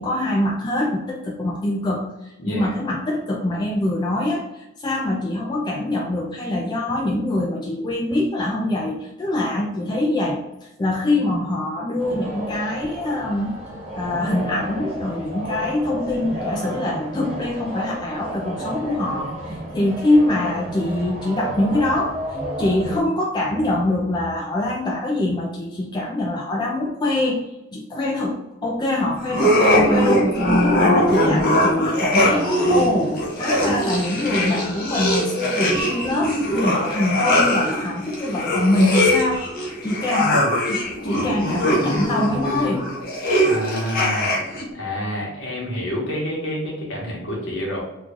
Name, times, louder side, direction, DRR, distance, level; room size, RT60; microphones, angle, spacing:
voice 1, 0.0-13.6 13.9-42.9, left 1 dB, 20° left, -2 dB, 0.3 m, -24 dB
voice 2, 2.4-2.7 40.2-40.5 43.4-44.3 44.7-47.8, left 1 dB, 65° left, -3 dB, 1.2 m, -28 dB
sound 1, 12.0-23.0, right 1 dB, 30° right, 1.0 m, -32 dB
sound 2, 29.3-44.7, equal, 45° left, 0.9 m, -21 dB
3.0 x 2.4 x 3.7 m, 0.94 s
head